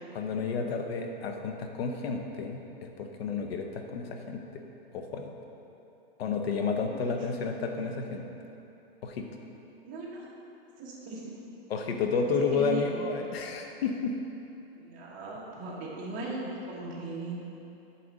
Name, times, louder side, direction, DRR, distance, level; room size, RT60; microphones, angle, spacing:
voice 1, 0.1-4.6 4.9-5.3 6.2-8.2 9.0-9.3 11.7-14.1, left 5 dB, 80° left, 4 dB, 1.0 m, -31 dB
voice 2, 9.8-10.3 10.8-11.2 12.5-12.8 14.8-16.4 16.7-17.4, right 2 dB, 25° right, -5 dB, 1.5 m, -38 dB
8.3 x 4.3 x 6.3 m, 2.9 s
supercardioid pair, 160°, 30 cm